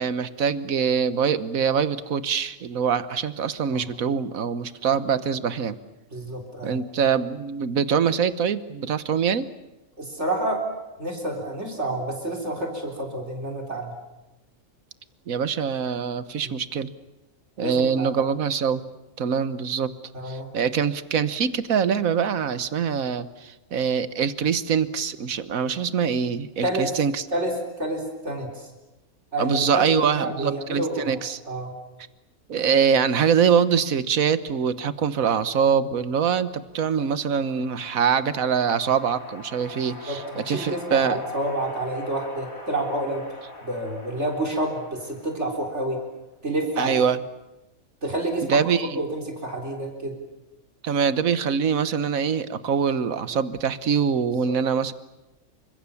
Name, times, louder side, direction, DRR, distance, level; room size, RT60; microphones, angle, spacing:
voice 1, 0.0-5.8 6.6-9.5 15.3-16.9 17.6-18.8 19.2-19.9 20.2-27.3 29.4-31.4 32.5-41.2 46.8-47.2 48.4-49.0 50.8-54.9, right 7 dB, 75° right, 14 dB, 1.5 m, -24 dB
voice 2, 6.1-6.8 10.0-10.6 11.0-13.9 16.4-16.6 17.6-18.2 20.1-20.5 26.6-26.9 27.3-28.7 29.3-31.2 31.5-31.7 40.1-43.2 43.6-46.0 46.4-47.0 48.0-48.6 49.0-50.1 54.5-54.6, right 1 dB, 55° right, 2 dB, 4.3 m, -29 dB
sound 1, 36.7-46.2, left 2 dB, 75° left, 3.9 m, -43 dB
28.5 x 25.5 x 7.1 m, 0.99 s
omnidirectional pair, 1.5 m